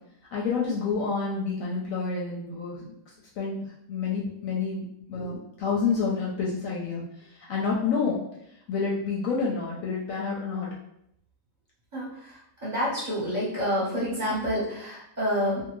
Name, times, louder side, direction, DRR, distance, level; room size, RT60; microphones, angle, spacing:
voice 1, 0.3-3.0 3.4-7.0 7.3-8.2 8.7-10.7, left 5 dB, 70° left, -4 dB, 0.9 m, -29 dB
voice 2, 11.9-12.3 12.6-15.6, equal, 35° right, -9 dB, 0.9 m, -28 dB
2.7 x 2.3 x 3.0 m, 0.76 s
omnidirectional pair, 1.7 m